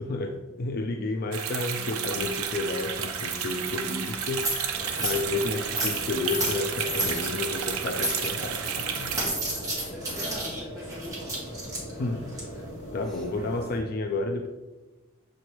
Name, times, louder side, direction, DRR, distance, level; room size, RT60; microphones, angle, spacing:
voice 1, 0.0-4.5 5.0-9.2 11.9-12.3 12.9-14.5, left 3 dB, 45° left, 4 dB, 0.4 m, -31 dB
sound 1, 1.3-9.3, right 7 dB, 75° right, 0.7 m, -32 dB
sound 2, 1.7-13.8, right 1 dB, 15° right, 1.8 m, -34 dB
sound 3, 4.7-13.8, equal, 15° left, 1.1 m, -41 dB
voice 2, 9.4-11.5 12.3-12.5 13.1-13.3 13.6-13.7, equal, ahead, -7 dB, 2.0 m, -43 dB
7.1 x 3.2 x 4.4 m, 1.2 s
head